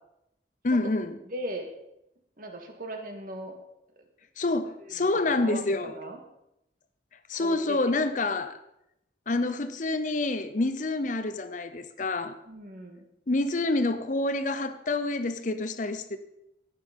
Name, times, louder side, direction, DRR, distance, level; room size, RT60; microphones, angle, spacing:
voice 1, 0.6-1.2 4.4-5.9 7.3-8.6 9.3-12.4 13.3-16.2, left 2 dB, 45° left, 0.7 m, -27 dB
voice 2, 1.3-1.7 2.4-3.6 5.0-5.1 5.4-6.2 7.3-7.8 12.5-13.1, equal, 50° right, 1.8 m, -38 dB
11.5 x 9.3 x 5.2 m
head